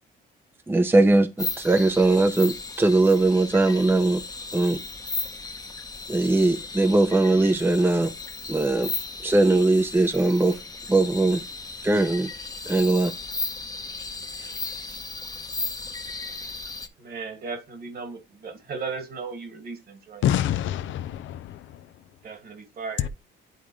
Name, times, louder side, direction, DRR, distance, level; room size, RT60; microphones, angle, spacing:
voice 1, 0.7-4.2 4.5-4.8 6.1-8.1 8.5-8.9 9.2-10.6 10.9-11.4 11.8-12.3 12.7-13.1, right 2 dB, 10° right, 0.7 m, -20 dB
sound 1, 1.4-16.9, left 3 dB, 20° left, 0.9 m, -35 dB
voice 2, 17.0-20.2 22.2-23.1, right 4 dB, 50° right, 2.0 m, -36 dB
voice 3, 20.2-21.8 23.0-23.1, left 11 dB, 75° left, 0.6 m, -26 dB
10.5 x 3.7 x 3.1 m
cardioid pair, 90°, 20 cm